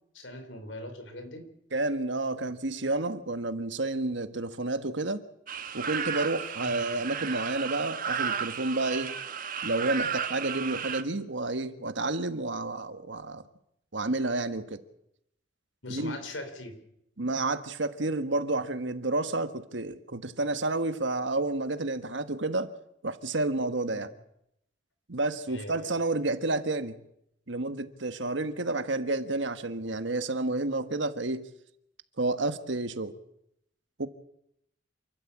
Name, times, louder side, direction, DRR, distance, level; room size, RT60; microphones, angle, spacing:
voice 1, 0.1-1.4 6.6-6.8 15.8-16.7 23.9-24.0 25.5-25.9, left 1 dB, 85° left, 8 dB, 4.2 m, -40 dB
voice 2, 1.7-5.2 5.7-9.2 9.6-13.4 13.9-14.8 15.9-16.2 17.2-22.7 23.0-24.1 25.1-27.0 27.5-31.5 32.2-33.2 34.0-34.1, right 2 dB, 70° right, 10 dB, 1.5 m, -30 dB
sound 1, 5.5-11.0, right 7 dB, 50° right, 1.4 m, -33 dB
28.5 x 13.0 x 8.5 m, 0.79 s
head